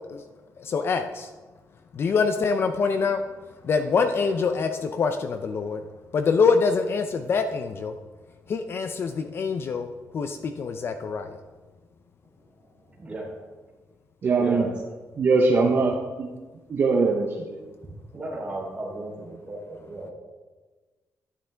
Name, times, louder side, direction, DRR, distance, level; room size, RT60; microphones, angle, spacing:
voice 1, 0.6-1.3 1.9-3.2 3.6-5.8 6.1-7.9 8.5-9.9 10.1-11.4, left 5 dB, 40° left, 8 dB, 0.5 m, -25 dB
voice 2, 12.5-13.4 14.4-14.8 18.1-20.1, right 2 dB, 15° right, -4 dB, 3.4 m, -35 dB
voice 3, 14.2-14.7 15.2-16.3 16.7-17.6, right 4 dB, 40° right, 1 dB, 0.9 m, -22 dB
11.5 x 11.5 x 3.4 m, 1.3 s
wide cardioid pair, 180°, 6 cm